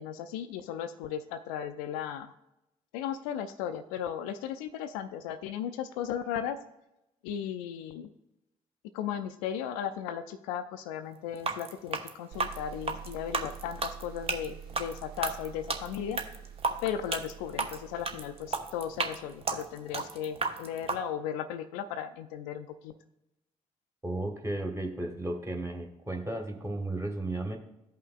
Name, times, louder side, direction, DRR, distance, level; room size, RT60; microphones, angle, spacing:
voice 1, 0.0-2.3 2.9-6.6 7.2-8.1 8.9-16.2 16.8-22.9, left 9 dB, 70° left, 10 dB, 0.4 m, -36 dB
sound 1, 11.4-21.0, right 4 dB, 35° right, 0.8 m, -33 dB
sound 2, 12.3-19.8, right 8 dB, 60° right, 0.9 m, -48 dB
voice 2, 24.0-27.6, right 2 dB, 15° right, 2 dB, 1.5 m, -34 dB
13.5 x 5.6 x 2.4 m, 0.88 s
figure-of-eight pair, 40°, 18 cm